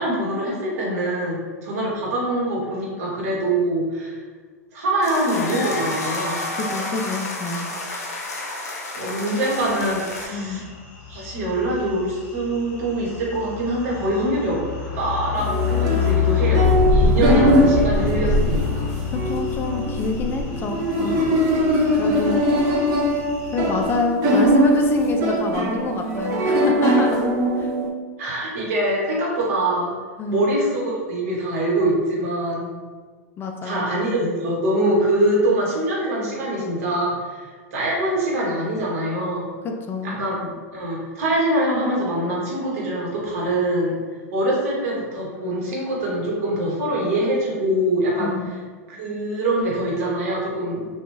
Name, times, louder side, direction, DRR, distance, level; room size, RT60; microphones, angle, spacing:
voice 1, 0.0-4.2 4.7-6.5 8.9-10.6 11.1-14.6 14.9-18.9 28.2-29.9 30.3-32.8 33.6-39.5 40.0-43.9 44.3-48.5 48.9-50.9, right 1 dB, 70° right, -4 dB, 1.0 m, -24 dB
sound 1, 5.0-10.3, left 2 dB, 90° left, 0.5 m, -30 dB
voice 2, 6.5-7.7 10.3-10.6 19.1-21.3 22.0-22.4 23.5-27.2 27.6-27.7 30.2-30.5 33.4-33.9 39.9-40.2 48.2-48.5, left 3 dB, 25° left, 3 dB, 0.3 m, -26 dB
sound 2, 9.4-24.0, left 8 dB, 45° left, 0.9 m, -28 dB
sound 3, 15.4-27.9, equal, 45° right, 0.5 m, -21 dB
2.4 x 2.3 x 3.1 m, 1.5 s
hypercardioid pair, 100°, 8 cm